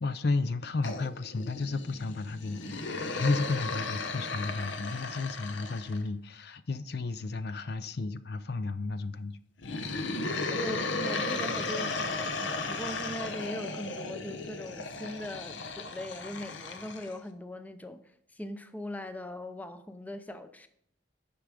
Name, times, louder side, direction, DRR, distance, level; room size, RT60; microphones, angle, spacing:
voice 1, 0.0-9.4, left 3 dB, 55° left, 0.5 m, -33 dB
sound 1, 0.8-6.0 9.6-17.2, left 3 dB, 75° left, 0.9 m, -35 dB
voice 2, 10.5-20.7, equal, 10° left, 0.5 m, -40 dB
10.0 x 6.2 x 4.9 m
head